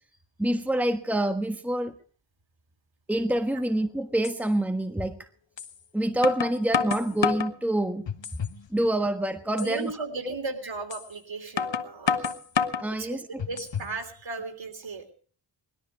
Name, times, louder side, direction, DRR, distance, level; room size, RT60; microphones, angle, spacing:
voice 1, 0.4-1.9 3.1-5.2 5.9-8.1 8.7-9.9 12.8-13.4, right 1 dB, 5° right, 7 dB, 1.3 m, -26 dB
sound 1, 3.7-3.8 4.2-4.4 5.6-5.7 6.2-7.6 8.1-8.6 9.0-9.1 9.6-9.7 10.9-11.0 11.6-12.9 13.4-13.9, left 6 dB, 75° left, 1.1 m, -28 dB
voice 2, 9.6-12.3 13.0-13.2 13.5-15.1, right 3 dB, 80° right, 5 dB, 3.2 m, -36 dB
20.0 x 13.0 x 4.8 m, 0.44 s
wide cardioid pair, 60°, 45 cm